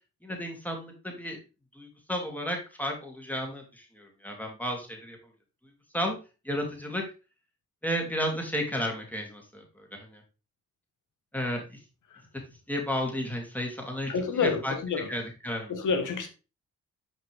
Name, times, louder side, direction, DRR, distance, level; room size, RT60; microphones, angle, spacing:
voice 1, 0.2-1.4 1.8-5.2 5.9-6.2 6.4-7.0 7.8-9.6 10.0-10.2 11.3-11.8 12.7-14.1 14.4-14.7 15.1-15.7, equal, 5° left, 2.7 m, -32 dB
voice 2, 14.1-15.1 15.7-16.3, left 5 dB, 65° left, 1.4 m, -28 dB
5.7 x 5.3 x 3.4 m
supercardioid pair, 45°, 33 cm